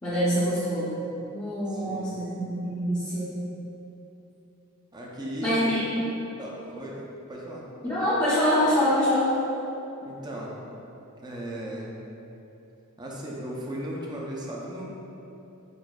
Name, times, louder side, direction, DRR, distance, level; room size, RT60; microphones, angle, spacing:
voice 1, 0.0-0.9 1.3-3.3 5.4-6.0 7.8-9.3, equal, 15° left, -13 dB, 0.7 m, -25 dB
voice 2, 1.7-2.2 4.9-5.7 6.4-7.0 7.3-7.7 10.0-10.6 11.2-12.0 13.0-14.8, right 1 dB, 20° right, -3 dB, 0.5 m, -36 dB
6.2 x 2.5 x 2.3 m, 2.9 s
head